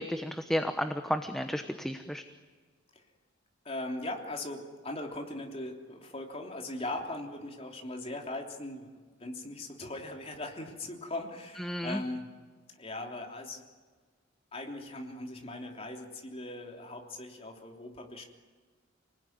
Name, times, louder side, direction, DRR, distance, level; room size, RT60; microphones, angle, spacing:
voice 1, 0.0-2.2 11.6-12.0, equal, ahead, 6 dB, 1.0 m, -32 dB
voice 2, 3.7-8.9 9.2-12.3 12.8-13.6 14.5-18.2, left 2 dB, 30° left, 1 dB, 3.4 m, -39 dB
29.0 x 20.0 x 9.5 m, 1.5 s
head